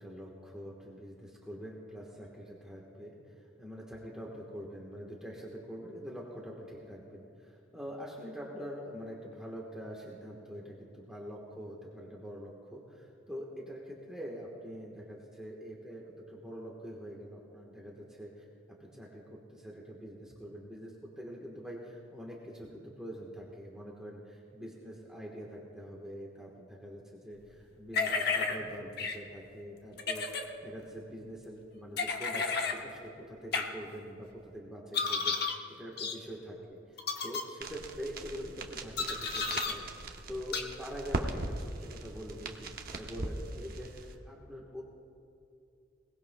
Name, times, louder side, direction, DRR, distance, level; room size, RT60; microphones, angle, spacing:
voice 1, 0.0-36.8 37.2-44.8, equal, 5° right, -4 dB, 1.2 m, -45 dB
sound 1, 27.9-28.6 29.0-29.2 30.0-30.4 32.0-32.8 33.5-33.6 34.9-35.6 36.0-36.2 37.0-37.4 39.0-39.7 40.5-40.6, left 4 dB, 50° left, 1.1 m, -32 dB
sound 2, 37.6-44.1, right 2 dB, 45° right, 0.9 m, -40 dB
22.0 x 19.0 x 2.3 m, 2.7 s
head